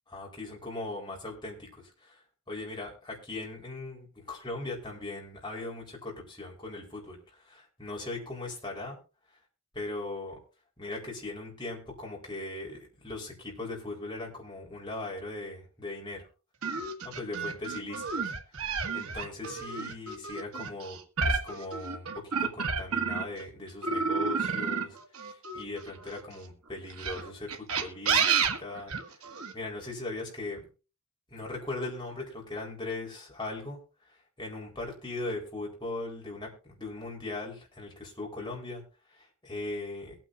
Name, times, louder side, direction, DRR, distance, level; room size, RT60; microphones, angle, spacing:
voice 1, 0.1-2.2 2.5-7.2 7.5-9.0 9.7-10.4 10.8-16.2 17.0-18.3 18.9-21.0 21.3-25.0 25.5-28.9 29.5-30.6 31.3-33.8 34.4-38.8 39.4-40.1, left 2 dB, 20° left, -2 dB, 4.5 m, -39 dB
sound 1, 16.6-23.4 23.8-26.2 26.9-29.5, right 5 dB, 75° right, 1.8 m, -30 dB
22.5 x 9.1 x 2.6 m, 0.32 s
head